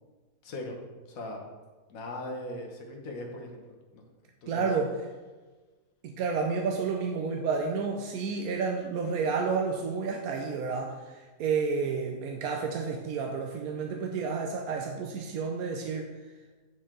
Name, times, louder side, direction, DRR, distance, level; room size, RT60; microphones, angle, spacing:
voice 1, 0.4-0.7 1.1-1.4 1.9-4.1 4.4-4.6, left 1 dB, 60° left, 1 dB, 1.5 m, -39 dB
voice 2, 4.5-5.0 6.0-16.1, right 5 dB, 75° right, 2 dB, 1.1 m, -30 dB
9.4 x 4.6 x 3.7 m, 1.3 s
omnidirectional pair, 1.7 m